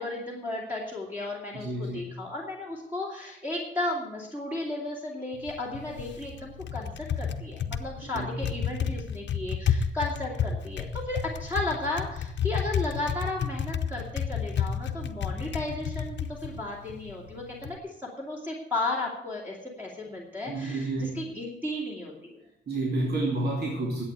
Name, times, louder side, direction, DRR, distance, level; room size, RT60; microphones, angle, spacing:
voice 1, 0.0-22.4, left 2 dB, 10° right, -3 dB, 2.6 m, -34 dB
voice 2, 1.5-2.1 8.0-8.3 20.5-21.1 22.7-24.0, right 2 dB, 60° right, -3 dB, 2.9 m, -30 dB
Typing, 5.3-17.8, left 7 dB, 75° left, 0.8 m, -32 dB
11.0 x 8.6 x 8.1 m, 0.83 s
wide cardioid pair, 145°, 19 cm